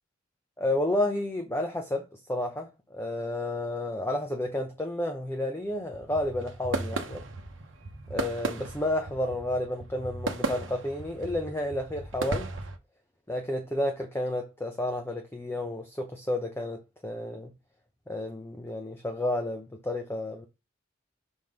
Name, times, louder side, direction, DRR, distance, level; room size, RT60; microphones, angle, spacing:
voice 1, 0.6-7.2 8.1-12.5 13.3-17.5 18.1-20.5, left 1 dB, 10° left, 0.8 m, -31 dB
sound 1, 5.7-12.8, right 3 dB, 70° right, 0.9 m, -36 dB
6.2 x 3.8 x 5.1 m
head